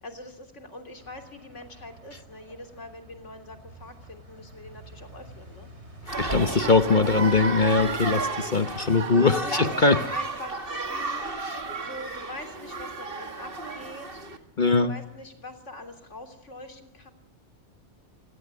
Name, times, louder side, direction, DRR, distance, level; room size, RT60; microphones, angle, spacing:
voice 1, 0.0-5.7 9.4-11.3 11.8-17.1, left 2 dB, 80° left, 6 dB, 3.5 m, -43 dB
sound 1, 0.9-6.6, right 1 dB, 65° right, 5.4 m, -49 dB
voice 2, 6.1-10.0 11.1-11.6 14.6-14.9, left 4 dB, 45° left, 9 dB, 1.2 m, -22 dB
sound 2, 6.1-14.4, right 3 dB, 50° right, 1.9 m, -32 dB
28.0 x 18.0 x 9.7 m, 0.85 s
omnidirectional pair, 1.2 m